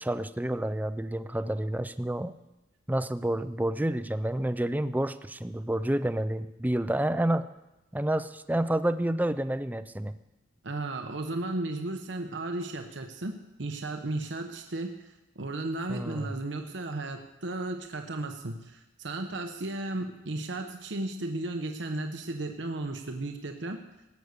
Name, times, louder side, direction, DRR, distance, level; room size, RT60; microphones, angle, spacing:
voice 1, 0.0-2.3 2.9-7.5 7.9-10.2 15.9-16.3, right 1 dB, 10° right, 12 dB, 0.5 m, -29 dB
voice 2, 10.6-23.8, right 2 dB, 85° right, 4 dB, 1.0 m, -35 dB
18.0 x 8.2 x 6.6 m, 0.99 s
head